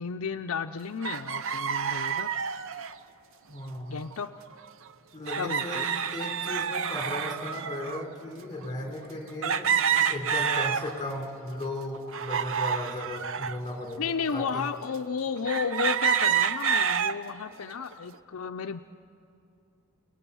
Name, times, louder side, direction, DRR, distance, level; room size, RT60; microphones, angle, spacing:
voice 1, 0.0-2.4 3.9-4.3 5.4-5.8 13.9-18.8, left 6 dB, 75° left, 7 dB, 0.6 m, -33 dB
sound 1, 1.0-2.9 4.1-4.2 4.5-4.6 5.3-8.1 8.6-8.7 9.4-11.2 11.6-13.6 14.2-14.3 15.5-17.2 17.7-18.1, right 7 dB, 65° right, 0.7 m, -28 dB
voice 2, 3.5-3.9 5.1-14.7, left 1 dB, 20° left, 2 dB, 3.7 m, -36 dB
30.0 x 19.0 x 7.0 m, 2.6 s
head